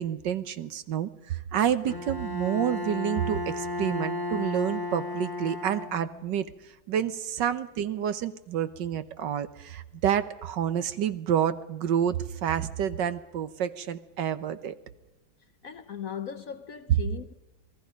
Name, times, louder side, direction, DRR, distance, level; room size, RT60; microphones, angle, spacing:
voice 1, 0.0-14.7 16.9-17.0, right 9 dB, 65° right, 1.5 m, -29 dB
Bowed string instrument, 1.9-6.4, left 2 dB, 15° left, 1.1 m, -34 dB
voice 2, 15.6-17.3, left 8 dB, 55° left, 1.0 m, -38 dB
27.5 x 20.0 x 5.2 m
omnidirectional pair, 2.2 m